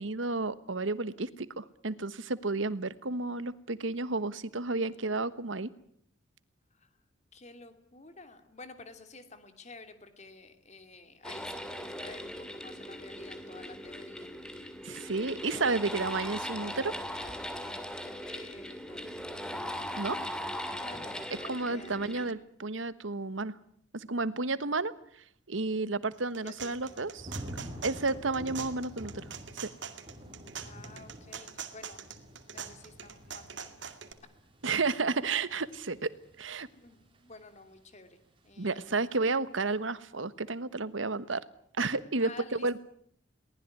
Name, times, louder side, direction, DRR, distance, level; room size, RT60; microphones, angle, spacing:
voice 1, 0.0-5.7 14.8-16.9 20.0-20.2 21.5-23.5 23.9-24.9 25.5-27.3 27.8-29.2 29.6-29.7 34.6-36.7 38.6-41.4 41.8-42.8, right 3 dB, 85° right, 15 dB, 1.3 m, -32 dB
voice 2, 7.3-14.3 18.2-19.2 19.5-19.6 20.8-21.9 26.4-27.2 30.6-32.0 32.5-33.9 36.7-39.1 42.2-42.7, left 3 dB, 35° left, 8 dB, 3.0 m, -51 dB
sound 1, 11.2-22.3, equal, 5° left, 2.3 m, -39 dB
sound 2, 26.1-34.1, right 7 dB, 65° right, 2.3 m, -43 dB
Thunder / Rain, 26.7-37.7 38.1-38.5, equal, 30° right, 4.5 m, -48 dB
23.0 x 19.0 x 9.7 m, 0.66 s
head